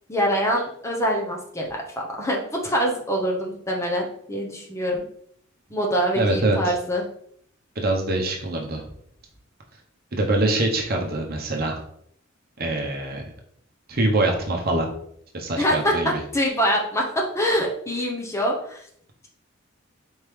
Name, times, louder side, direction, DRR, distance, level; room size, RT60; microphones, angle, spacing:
voice 1, 0.1-1.7 2.2-5.1 5.7-7.0 15.6-18.8, equal, 15° left, -1 dB, 0.7 m, -24 dB
voice 2, 6.1-6.7 7.8-8.8 10.1-11.8 12.6-13.2 13.9-14.9 15.3-16.2, right 2 dB, 50° right, 1 dB, 0.8 m, -24 dB
4.4 x 3.6 x 3.2 m, 0.67 s
head